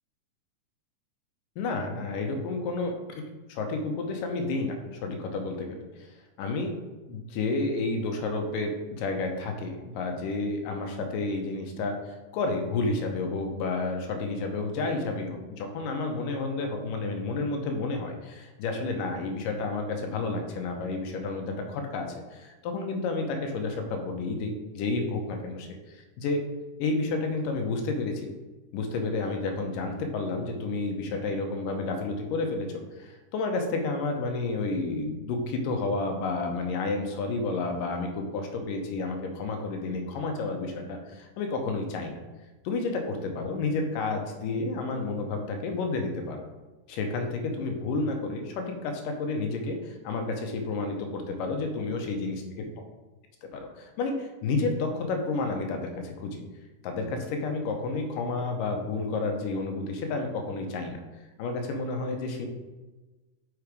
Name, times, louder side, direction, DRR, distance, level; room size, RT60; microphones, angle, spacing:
voice 1, 1.6-2.9 3.5-6.7 7.1-26.4 26.8-28.3 28.7-42.2 42.6-46.4 46.9-52.7 53.4-56.4 56.8-61.0 61.4-62.5, left 3 dB, 85° left, 3 dB, 2.5 m, -31 dB
5.7 x 5.1 x 4.7 m, 1.2 s
omnidirectional pair, 3.8 m